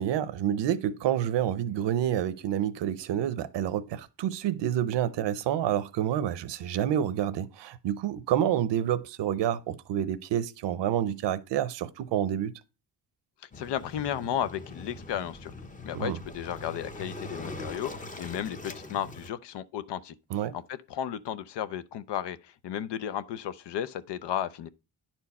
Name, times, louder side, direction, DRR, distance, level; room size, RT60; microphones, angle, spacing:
voice 1, 0.0-12.5 15.9-16.2 20.3-20.5, right 10 dB, 85° right, 0.7 m, -28 dB
Waves surf, 13.5-19.3, left 2 dB, 20° left, 0.7 m, -42 dB
voice 2, 13.6-15.5 15.8-20.1 20.5-24.7, left 10 dB, 80° left, 0.7 m, -34 dB
10.0 x 4.5 x 4.1 m
cardioid pair, 135°, 41 cm